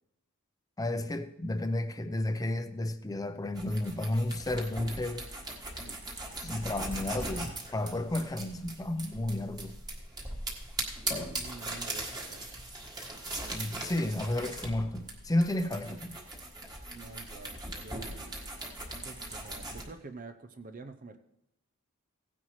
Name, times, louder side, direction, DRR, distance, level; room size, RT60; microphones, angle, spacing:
voice 1, 0.8-5.3 6.4-9.7 13.5-16.1, left 1 dB, 15° left, 9 dB, 0.7 m, -32 dB
sound 1, 3.5-19.8, right 2 dB, 20° right, 1.6 m, -40 dB
voice 2, 11.3-12.4 15.9-16.0 16.9-18.3 19.0-21.2, right 3 dB, 40° right, 8 dB, 0.6 m, -48 dB
16.5 x 9.7 x 3.2 m, 0.88 s
head